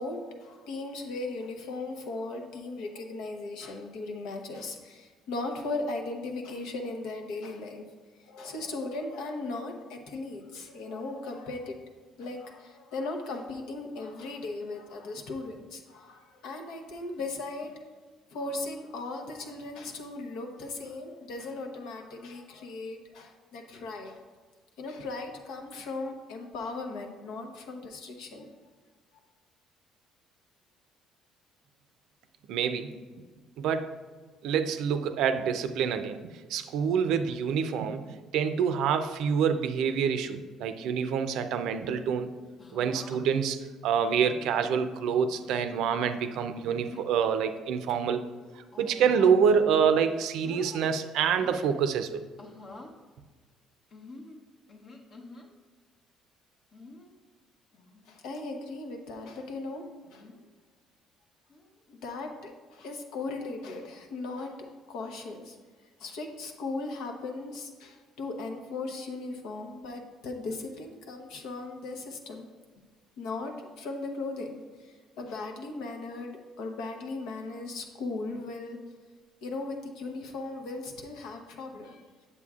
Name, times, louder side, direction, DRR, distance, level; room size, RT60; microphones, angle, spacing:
voice 1, 0.0-7.8 8.2-11.8 12.2-17.8 18.3-24.2 24.8-28.5 58.0-59.8 60.1-60.3 61.9-65.6 66.0-72.5 73.2-78.8 79.4-82.0, left 3 dB, 80° left, 3 dB, 0.9 m, -37 dB
voice 2, 32.5-32.9 33.6-34.0 34.4-42.3 42.7-48.2 48.5-52.2, right 7 dB, 75° right, 9 dB, 0.4 m, -27 dB
sound 1, 42.6-43.2 44.1-44.7 45.3-45.6 46.6-47.1 47.7-47.9 48.7-49.6 49.9-50.9 51.3-51.8 52.4-52.9 53.9-55.5 56.7-57.1 57.7-58.1 58.3-58.4 60.0-60.4 61.5-61.8, left 2 dB, 40° left, 0.9 m, -48 dB
8.3 x 6.9 x 2.4 m, 1.4 s
cardioid pair, 125°, 0 cm